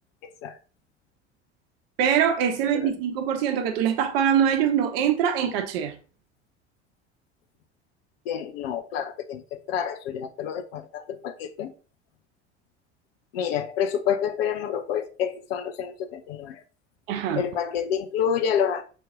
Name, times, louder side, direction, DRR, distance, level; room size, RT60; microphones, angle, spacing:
voice 1, 2.0-5.9 17.1-17.4, right 8 dB, 55° right, 0.9 m, -23 dB
voice 2, 8.2-11.7 13.3-16.6 17.3-18.8, left 8 dB, 55° left, 0.9 m, -28 dB
6.6 x 4.6 x 3.7 m
figure-of-eight pair, 70°, 35 cm